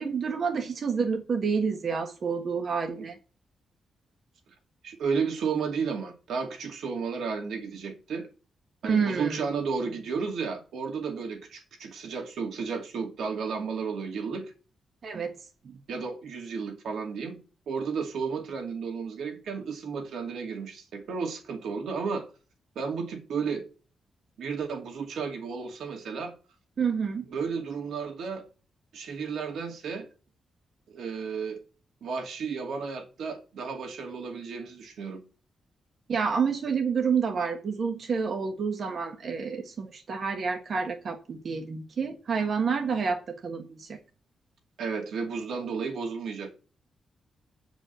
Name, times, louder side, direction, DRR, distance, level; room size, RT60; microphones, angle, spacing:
voice 1, 0.0-3.2 8.8-9.4 15.0-15.3 15.6-15.8 26.8-27.2 36.1-44.0, right 5 dB, 45° right, 1.4 m, -29 dB
voice 2, 4.8-8.3 8.8-14.5 15.9-17.4 17.7-22.2 22.8-23.7 24.4-26.3 27.3-28.4 28.9-30.1 30.9-31.6 32.0-35.2 44.8-46.5, right 5 dB, 85° right, 2.4 m, -33 dB
8.6 x 5.2 x 6.7 m
wide cardioid pair, 165°, 0 cm